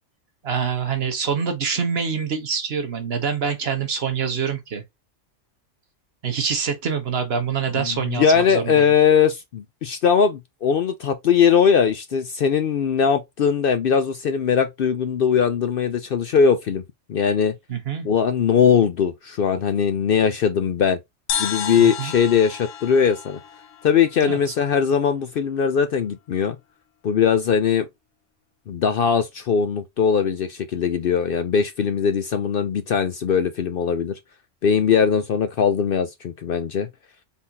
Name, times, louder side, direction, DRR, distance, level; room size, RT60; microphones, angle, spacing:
voice 1, 0.4-4.8 6.2-8.9 17.7-18.1 21.8-22.1 24.2-24.5, right 6 dB, 55° right, 1.3 m, -25 dB
voice 2, 7.8-16.8 17.1-17.5 18.0-21.0 21.4-23.4 23.8-26.6 27.0-27.9 28.7-34.1 34.6-36.9, left 7 dB, 60° left, 0.6 m, -20 dB
sound 1, 21.3-24.8, left 8 dB, 75° left, 1.2 m, -32 dB
4.1 x 3.7 x 2.7 m
omnidirectional pair, 1.3 m